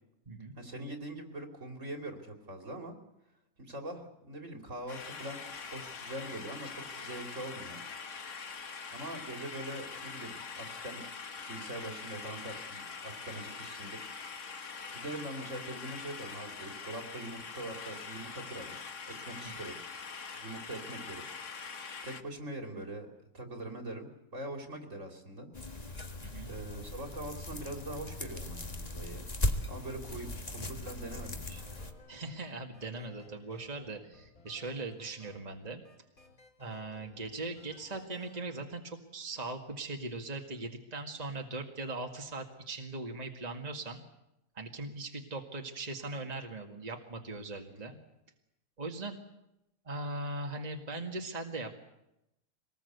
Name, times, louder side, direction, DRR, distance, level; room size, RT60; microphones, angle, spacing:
voice 1, 0.6-2.9 3.6-5.4 5.7-7.8 8.9-11.0 11.5-14.1 14.5-14.6 14.9-18.8 19.1-19.8 20.3-21.2 22.0-23.1 23.3-25.5 26.4-29.3 29.7-31.6 47.7-47.9, right 1 dB, 55° right, 4 dB, 3.5 m, -43 dB
sound 1, 4.9-22.2, left 5 dB, 55° left, 1.7 m, -44 dB
sound 2, 25.5-31.9, left 1 dB, 25° left, 1.8 m, -38 dB
voice 2, 26.2-26.6 32.1-35.8 36.6-44.0 44.6-48.0 48.8-49.2 49.9-51.7, right 2 dB, 30° right, 2 dB, 2.0 m, -40 dB
sound 3, 31.6-38.5, left 3 dB, 70° left, 4.6 m, -58 dB
25.0 x 20.0 x 8.1 m, 0.87 s
omnidirectional pair, 1.5 m